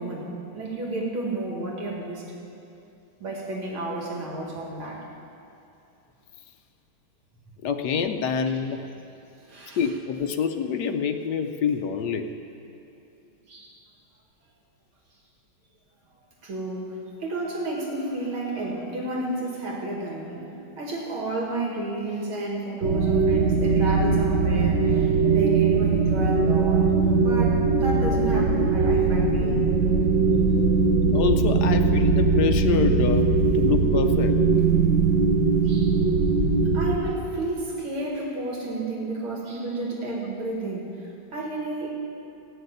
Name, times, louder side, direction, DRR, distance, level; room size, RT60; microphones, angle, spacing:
voice 1, 0.0-2.3 3.2-5.1 9.5-9.8 13.5-13.8 16.4-20.5 20.8-26.9 27.2-29.7 35.6-36.0 36.7-41.9, right 2 dB, 80° right, -2 dB, 2.7 m, -31 dB
voice 2, 7.6-8.8 9.8-12.3 31.1-33.3 33.5-34.4, left 6 dB, 70° left, 6 dB, 1.0 m, -26 dB
sound 1, 22.8-37.0, right 4 dB, 50° right, 0.8 m, -20 dB
16.0 x 6.6 x 9.3 m, 2.7 s
omnidirectional pair, 2.3 m